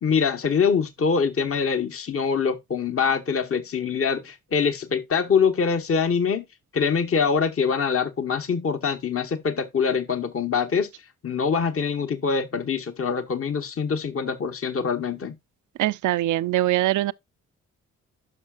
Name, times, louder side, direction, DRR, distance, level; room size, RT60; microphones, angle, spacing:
voice 1, 0.0-6.4 6.7-10.9 11.2-15.3, left 6 dB, 45° left, 1.1 m, -24 dB
voice 2, 15.8-17.1, right 15 dB, 75° right, 0.4 m, -22 dB
11.0 x 5.8 x 2.4 m
supercardioid pair, 50°, 31 cm